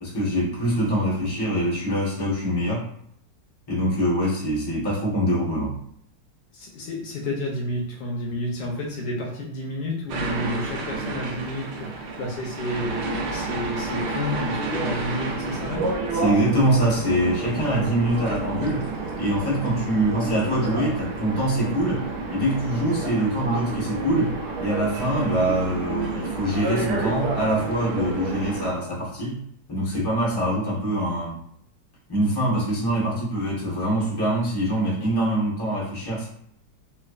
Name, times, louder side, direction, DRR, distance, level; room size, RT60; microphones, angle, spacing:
voice 1, 0.0-2.8 3.7-5.7 16.1-18.8 19.2-22.0 22.3-24.3 24.6-29.4 29.7-31.4 32.1-36.3, right 1 dB, 15° left, -6 dB, 0.8 m, -24 dB
voice 2, 6.5-15.9, left 1 dB, 70° left, -1 dB, 1.2 m, -31 dB
sound 1, 10.1-28.7, right 3 dB, 70° right, 1.2 m, -30 dB
3.3 x 3.1 x 2.4 m, 0.68 s
omnidirectional pair, 2.0 m